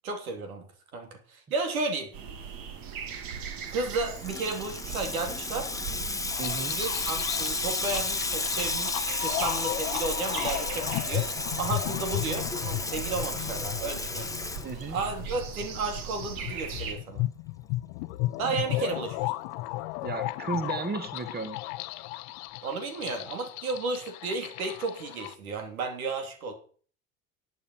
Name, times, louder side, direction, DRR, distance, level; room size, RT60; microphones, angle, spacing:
voice 1, 0.0-0.6 0.9-2.1 3.7-5.7 6.7-11.3 11.6-14.3 14.9-17.2 18.4-19.1 22.6-26.5, right 3 dB, 80° right, 5 dB, 3.1 m, -33 dB
sound 1, 2.1-16.9, right 7 dB, 55° right, 2.8 m, -40 dB
Water tap faucet / Sink (filling or washing), 3.8-15.2, left 3 dB, 10° left, 1.3 m, -33 dB
sound 2, 6.3-25.3, left 18 dB, 60° left, 0.9 m, -35 dB
voice 2, 6.4-6.8 14.6-15.0 18.8-19.0 20.0-21.6, right 4 dB, 25° right, 9 dB, 1.8 m, -34 dB
11.0 x 9.5 x 5.8 m, 0.44 s
hypercardioid pair, 80°, 42 cm